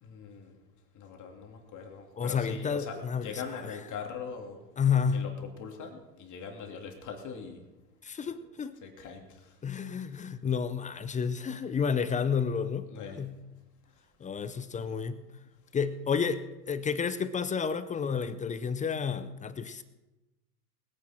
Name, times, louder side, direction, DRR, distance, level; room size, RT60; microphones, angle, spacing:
voice 1, 0.0-0.6 0.9-4.6 5.1-7.6 8.8-9.5 12.9-13.2, left 6 dB, 40° left, 2 dB, 3.0 m, -41 dB
voice 2, 2.2-3.3 4.8-5.2 8.0-8.8 9.6-12.9 13.2-13.3 14.2-15.2 15.7-19.8, left 6 dB, 15° left, 13 dB, 0.6 m, -30 dB
21.0 x 9.7 x 4.5 m, 1.1 s
hypercardioid pair, 105°, 47 cm